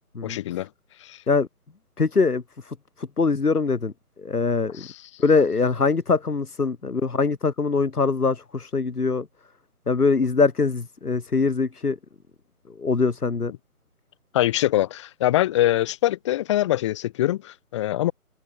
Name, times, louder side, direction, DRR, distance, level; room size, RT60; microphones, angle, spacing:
voice 1, 0.2-0.7 1.0-1.2 4.7-5.0 14.3-18.1, left 14 dB, 20° left, 2.9 m, -23 dB
voice 2, 2.0-4.9 5.2-9.3 9.9-12.0 12.7-13.5, left 4 dB, 80° left, 3.0 m, -23 dB
figure-of-eight pair, 160°, 45 cm